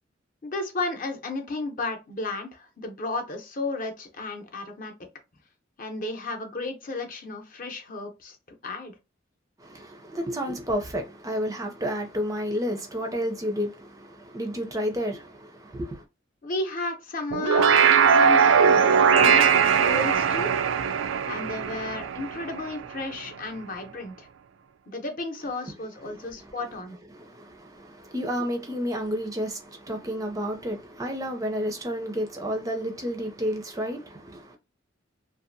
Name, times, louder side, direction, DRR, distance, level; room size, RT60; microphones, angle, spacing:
voice 1, 0.4-4.9 5.8-8.4 8.6-8.9 16.4-20.5 21.3-24.3 24.9-27.0, left 2 dB, 45° left, 0.7 m, -33 dB
voice 2, 9.6-16.0 26.0-26.5 27.1-34.6, equal, 20° right, 0.5 m, -31 dB
sound 1, 17.3-22.8, right 6 dB, 80° right, 0.3 m, -20 dB
2.7 x 2.4 x 2.6 m
head